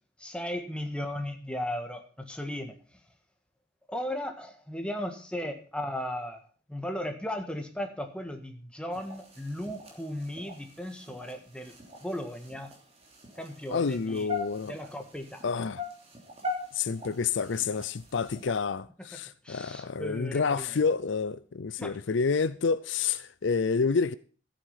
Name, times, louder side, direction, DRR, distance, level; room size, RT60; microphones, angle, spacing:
voice 1, 0.2-2.8 3.9-6.4 6.7-11.7 12.0-12.7 13.4-14.3 14.7-15.4 19.4-20.8 21.8-21.9, left 1 dB, 5° left, 1.5 m, -36 dB
sound 1, 8.9-18.6, left 3 dB, 30° right, 3.1 m, -42 dB
voice 2, 13.7-14.8 15.4-15.8 16.7-24.1, left 5 dB, 60° left, 0.5 m, -29 dB
14.0 x 8.5 x 5.7 m
head